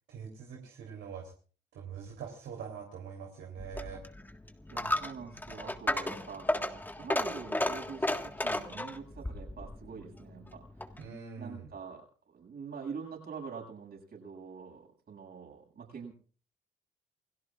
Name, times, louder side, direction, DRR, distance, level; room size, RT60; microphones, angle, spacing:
voice 1, 0.1-1.3 1.7-4.0 11.0-11.6, right 7 dB, 80° right, 0 dB, 3.6 m, -43 dB
Coin (dropping), 3.6-11.1, left 1 dB, 10° left, 1.6 m, -34 dB
voice 2, 4.7-10.7 11.4-16.1, right 6 dB, 55° right, 1 dB, 7.7 m, -45 dB
28.5 x 17.5 x 2.5 m, 0.41 s
cardioid pair, 90°, 20 cm